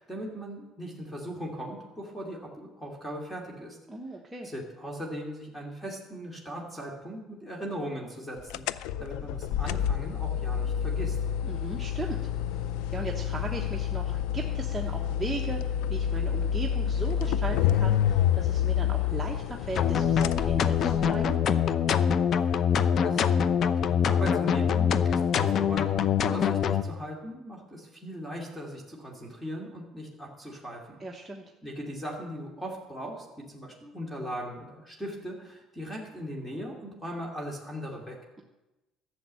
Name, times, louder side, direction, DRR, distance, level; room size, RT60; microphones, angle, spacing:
voice 1, 0.0-3.8 4.4-11.2 22.4-23.2 23.8-31.0 31.6-38.2, equal, 10° left, -1 dB, 2.5 m, -39 dB
voice 2, 3.9-4.5 11.4-12.6 12.9-15.6 15.9-21.4 31.0-31.4, right 2 dB, 10° right, 0 dB, 1.1 m, -37 dB
sound 1, 8.5-21.4, left 9 dB, 90° left, 0.4 m, -28 dB
sound 2, 19.8-26.8, left 8 dB, 50° left, 0.6 m, -24 dB
12.0 x 7.3 x 7.7 m, 1.0 s
cardioid pair, 110°, 0 cm